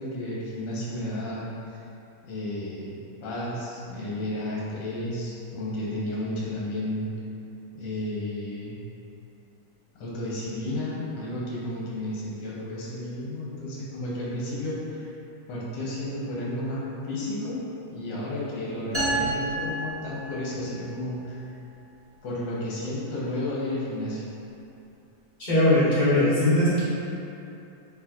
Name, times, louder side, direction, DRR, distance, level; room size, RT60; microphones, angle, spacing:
voice 1, 0.0-1.5 2.2-2.9 3.2-7.1 7.7-8.8 9.9-15.1 15.5-17.6 17.9-21.4 22.2-24.2, left 1 dB, 70° left, -7 dB, 1.6 m, -32 dB
sound 1, 18.9-20.7, right 2 dB, 15° right, 0.6 m, -29 dB
voice 2, 25.4-26.8, left 1 dB, 25° left, -12 dB, 1.4 m, -20 dB
4.7 x 3.8 x 3.0 m, 2.7 s
omnidirectional pair, 2.0 m